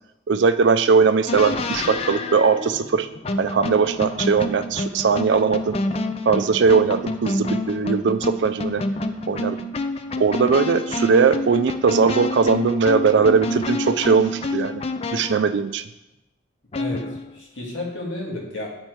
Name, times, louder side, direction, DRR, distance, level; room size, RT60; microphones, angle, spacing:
voice 1, 0.3-3.1 3.4-5.8 6.3-8.8 9.3-9.6 10.2-14.8 15.1-15.8, right 5 dB, 65° right, 10 dB, 0.4 m, -19 dB
sound 1, 1.3-15.5 16.7-17.4, left 1 dB, 30° left, 0.4 m, -28 dB
voice 2, 16.7-18.7, left 1 dB, 80° left, -2 dB, 1.9 m, -32 dB
8.8 x 4.4 x 4.6 m, 0.92 s
head